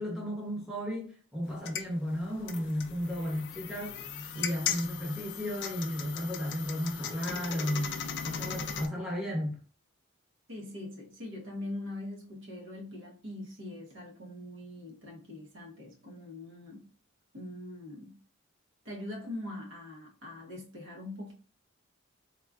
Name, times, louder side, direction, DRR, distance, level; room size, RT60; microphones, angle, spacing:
voice 1, 0.0-4.0 4.3-9.6, equal, ahead, 0.9 m, -34 dB
sound 1, 1.5-8.9, left 7 dB, 55° left, 0.4 m, -38 dB
voice 2, 10.5-16.9 17.3-18.2 18.8-21.3, left 1 dB, 60° right, 0.8 m, -42 dB
3.6 x 2.3 x 2.3 m
head